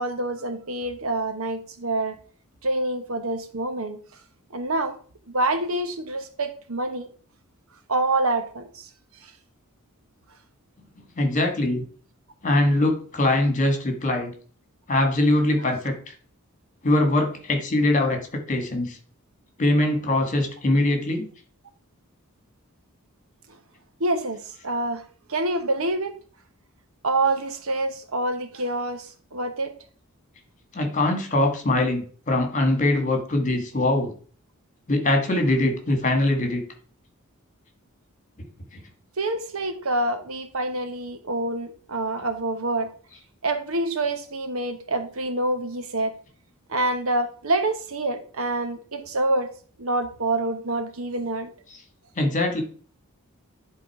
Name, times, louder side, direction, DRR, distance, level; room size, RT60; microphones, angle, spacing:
voice 1, 0.0-2.2 2.6-4.0 4.5-5.0 5.3-7.1 7.9-8.9 24.0-25.0 25.3-26.2 27.0-29.7 39.2-42.9 43.4-46.1 46.7-49.5 49.8-51.5, right 2 dB, 70° right, 8 dB, 1.1 m, -26 dB
voice 2, 11.2-11.8 12.4-14.3 14.9-16.1 16.8-19.0 19.6-21.3 30.7-34.1 34.9-36.6 52.2-52.6, left 1 dB, 35° left, 4 dB, 1.9 m, -22 dB
10.5 x 3.8 x 4.8 m, 0.42 s
head